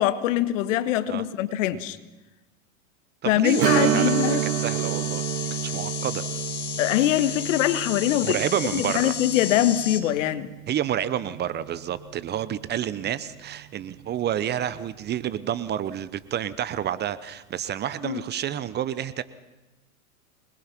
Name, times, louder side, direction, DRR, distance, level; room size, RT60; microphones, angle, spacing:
voice 1, 0.0-2.0 3.2-4.4 6.8-8.4 8.7-10.5 18.0-18.2, left 13 dB, 60° left, 1.6 m, -23 dB
voice 2, 3.2-4.1 4.6-5.2 5.5-6.2 8.2-9.1 10.7-19.2, right 10 dB, 25° right, 0.8 m, -29 dB
sound 1, 3.4-10.0, left 9 dB, 85° left, 2.2 m, -33 dB
Strum, 3.6-12.8 13.1-13.2 15.8-15.9 16.4-16.5, right 18 dB, 65° right, 0.7 m, -30 dB
26.5 x 21.0 x 6.0 m
hypercardioid pair, 115°, 43 cm